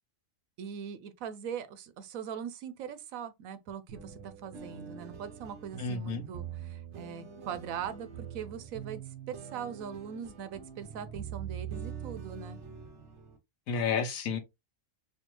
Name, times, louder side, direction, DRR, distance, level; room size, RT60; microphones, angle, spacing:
voice 1, 0.6-9.0 9.3-12.6, right 8 dB, 80° right, 1.1 m, -41 dB
sound 1, 3.9-13.4, right 8 dB, 60° right, 1.1 m, -44 dB
voice 2, 5.8-6.3 13.7-14.4, left 5 dB, 85° left, 1.2 m, -31 dB
4.4 x 2.4 x 3.0 m
omnidirectional pair, 1.4 m